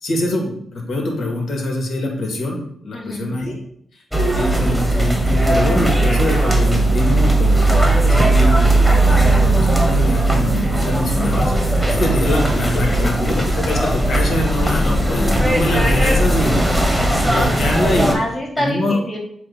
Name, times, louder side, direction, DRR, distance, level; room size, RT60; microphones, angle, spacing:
voice 1, 0.0-3.5 4.3-11.5 11.9-16.8 17.1-18.1 18.6-19.0, left 1 dB, 60° left, 0 dB, 2.4 m, -23 dB
voice 2, 2.9-3.3 12.8-13.3 16.5-17.5 18.1-19.2, left 1 dB, 25° left, -2 dB, 3.0 m, -28 dB
sound 1, 4.1-18.2, right 1 dB, ahead, 1.5 m, -17 dB
7.6 x 2.9 x 5.6 m, 0.67 s
cardioid pair, 65°, 0 cm